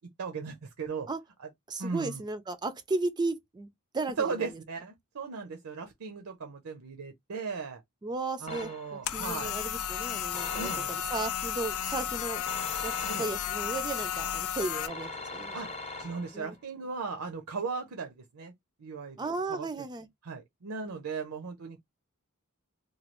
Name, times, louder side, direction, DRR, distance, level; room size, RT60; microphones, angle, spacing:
voice 1, 0.2-1.1 1.8-2.2 4.2-7.8 8.4-9.5 10.5-10.9 13.1-13.3 15.5-15.7 16.0-18.5 18.8-19.7 20.2-21.8, right 5 dB, 70° right, 0.6 m, -37 dB
voice 2, 1.7-3.7 3.9-4.5 8.0-15.6 16.3-16.6 19.2-20.1, right 3 dB, 20° right, 0.4 m, -35 dB
sound 1, 8.5-9.2 10.3-11.2 12.5-13.7 14.9-16.5, left 3 dB, 30° left, 0.6 m, -42 dB
sound 2, 9.1-14.9, left 9 dB, 65° left, 0.4 m, -33 dB
3.0 x 2.3 x 2.9 m
head